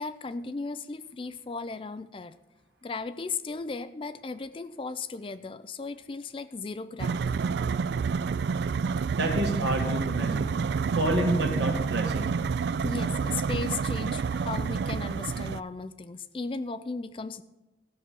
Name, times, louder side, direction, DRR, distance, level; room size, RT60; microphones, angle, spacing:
voice 1, 0.0-2.4 2.8-7.4 12.8-17.4, left 4 dB, 30° left, 13 dB, 0.4 m, -36 dB
sound 1, 7.0-15.6, right 5 dB, 65° right, 0.3 m, -28 dB
voice 2, 9.2-10.5 11.0-12.3, right 1 dB, 80° right, 3 dB, 2.0 m, -29 dB
14.0 x 6.1 x 6.8 m, 1.0 s
head